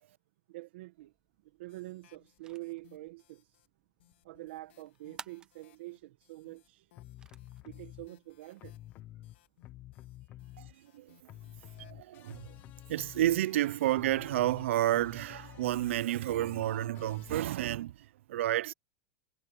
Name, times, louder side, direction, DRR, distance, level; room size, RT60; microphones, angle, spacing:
voice 1, 0.5-1.1 1.4-3.6 4.2-6.9 7.6-8.8 10.2-11.1 11.6-11.7, right 19 dB, 60° right, 1.4 m, -47 dB
sound 1, 0.9-10.4, right 6 dB, 10° right, 0.6 m, -58 dB
sound 2, 1.7-3.7 4.0-13.8, left 16 dB, 65° left, 3.2 m, -67 dB
sound 3, 7.0-8.1 8.6-11.0 11.2-17.6, left 14 dB, 25° left, 0.8 m, -50 dB
voice 2, 11.8-12.5 12.9-18.7, right 14 dB, 85° right, 0.4 m, -30 dB
supercardioid pair, 180°, 7 cm